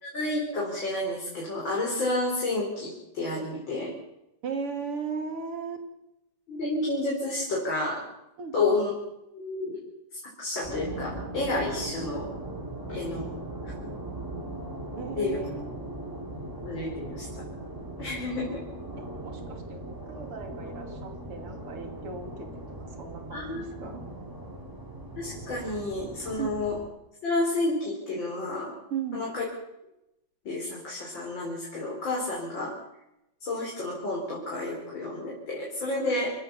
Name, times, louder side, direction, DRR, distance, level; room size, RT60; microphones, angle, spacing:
voice 1, 0.0-3.9 6.5-8.0 8.5-8.9 9.3-9.8 10.4-12.2 12.9-13.3 15.1-15.4 16.6-17.3 18.0-18.6 23.3-23.6 25.2-26.7 27.2-28.7 29.1-29.4 30.4-32.7 33.4-36.3, left 2 dB, 60° left, -3 dB, 5.1 m, -30 dB
voice 2, 4.4-5.8 8.4-8.7 15.0-15.7 19.0-22.5 22.8-24.0 26.4-26.5 28.9-29.2, right 6 dB, 85° right, 5 dB, 3.6 m, -36 dB
sound 1, 10.6-26.9, right 1 dB, 10° right, 2.8 m, -39 dB
28.5 x 14.0 x 7.0 m, 0.91 s
omnidirectional pair, 2.4 m